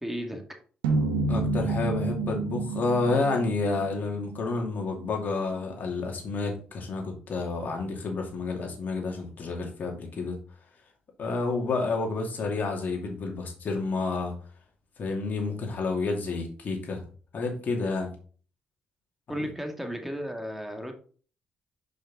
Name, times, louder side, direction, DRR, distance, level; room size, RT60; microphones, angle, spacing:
voice 1, 0.0-0.6 19.3-20.9, equal, 5° right, 4 dB, 2.1 m, -34 dB
sound 1, 0.8-5.2, right 3 dB, 90° right, 0.9 m, -30 dB
voice 2, 1.3-10.4 11.2-14.3 15.0-17.0 17.3-18.1, left 3 dB, 55° left, 1 dB, 2.5 m, -30 dB
5.6 x 5.2 x 4.2 m, 0.41 s
hypercardioid pair, 50°, 4 cm